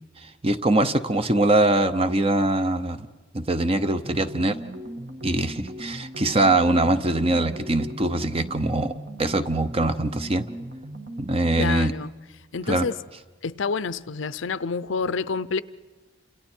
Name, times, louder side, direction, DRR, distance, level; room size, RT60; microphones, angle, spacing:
voice 1, 0.2-3.1 3.3-4.6 5.2-8.9 9.2-10.5 11.2-11.9 12.7-12.9, right 2 dB, 30° right, 0.8 m, -22 dB
sound 1, 4.0-11.7, right 1 dB, 55° right, 1.8 m, -38 dB
voice 2, 11.6-12.1 12.5-13.0 13.4-15.6, left 5 dB, 80° left, 0.6 m, -28 dB
29.5 x 27.0 x 4.5 m
head